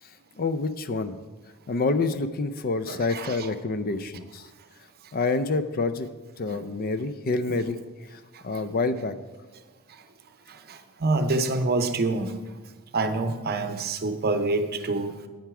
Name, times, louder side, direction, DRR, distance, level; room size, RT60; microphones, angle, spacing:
voice 1, 0.4-1.2 1.7-4.4 5.1-6.1 6.4-7.8 8.1-9.1, left 3 dB, 45° left, 11 dB, 0.5 m, -27 dB
voice 2, 2.9-3.5 6.5-6.6 7.5-7.6 10.7-12.3 12.9-15.2, right 3 dB, 45° right, 8 dB, 0.7 m, -27 dB
9.1 x 8.8 x 4.8 m, 1.3 s
head